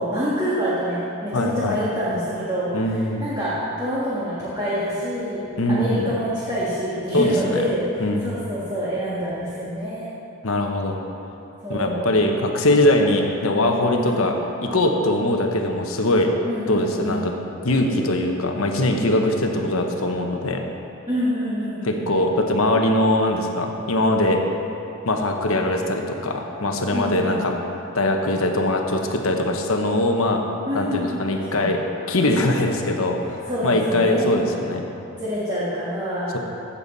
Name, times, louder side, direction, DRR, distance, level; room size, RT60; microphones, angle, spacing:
voice 1, 0.0-5.4 5.7-10.1 11.6-12.1 14.0-14.2 16.4-17.3 21.1-22.0 26.9-27.4 30.6-31.7 33.5-34.3 35.2-36.4, equal, 20° right, -9 dB, 1.7 m, -26 dB
voice 2, 1.3-1.8 2.7-3.3 5.6-6.1 7.1-7.6 8.0-8.4 10.4-11.0 11.7-14.3 14.6-16.3 16.7-17.3 17.6-20.6 21.8-24.4 25.0-27.5 27.9-30.4 30.7-31.8 32.1-33.2 33.6-34.9, left 1 dB, 70° left, 3 dB, 1.0 m, -21 dB
15.5 x 7.1 x 4.1 m, 2.9 s
head